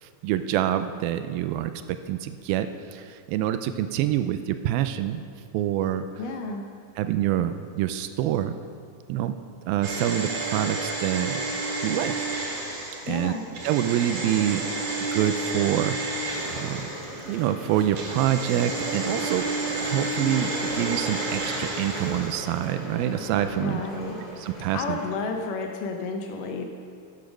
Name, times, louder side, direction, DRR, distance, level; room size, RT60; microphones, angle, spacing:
voice 1, 0.0-5.2 5.5-6.1 7.0-8.6 9.1-9.4 9.7-11.4 11.8-12.1 13.1-13.3 13.6-14.7 15.1-16.0 16.6-16.9 17.3-19.5 19.8-23.8 24.4-25.0, right 12 dB, 85° right, 10 dB, 2.3 m, -26 dB
voice 2, 6.2-6.7 13.1-13.4 23.6-24.2 24.7-26.7, left 4 dB, 70° left, 3 dB, 2.2 m, -31 dB
sound 1, 9.8-17.4 17.9-22.6 22.9-23.0, right 2 dB, 55° right, 3.3 m, -31 dB
sound 2, 16.2-25.1, equal, 10° left, 2.6 m, -37 dB
11.5 x 8.5 x 6.1 m, 2.2 s
omnidirectional pair, 4.3 m